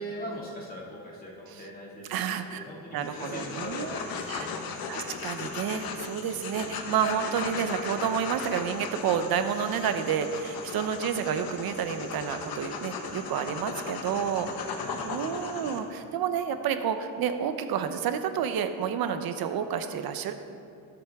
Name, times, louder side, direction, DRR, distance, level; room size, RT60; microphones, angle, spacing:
voice 1, 0.0-4.6 14.7-15.0, equal, 25° left, -4 dB, 2.4 m, -40 dB
voice 2, 2.1-2.6 2.9-4.0 4.3-4.5 4.9-20.3, right 8 dB, 75° right, 9 dB, 0.8 m, -30 dB
sound 1, 3.0-15.8, left 5 dB, 70° left, 1.2 m, -37 dB
20.5 x 7.8 x 3.6 m, 2.5 s
cardioid pair, 165°, 37 cm